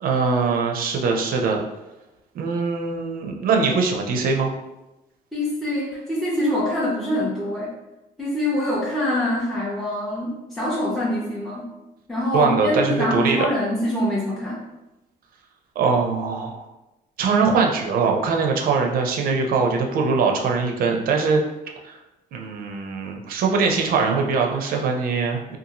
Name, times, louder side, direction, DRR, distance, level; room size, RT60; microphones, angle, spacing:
voice 1, 0.0-1.6 2.3-4.5 12.3-13.5 15.8-16.7 17.2-21.4 21.8-22.0 22.3-25.6, right 4 dB, 60° right, 2 dB, 0.5 m, -22 dB
voice 2, 5.3-7.7 8.2-11.7 12.1-14.6, left 1 dB, ahead, -7 dB, 0.6 m, -24 dB
2.6 x 2.4 x 2.8 m, 0.97 s
cardioid pair, 110°, 17 cm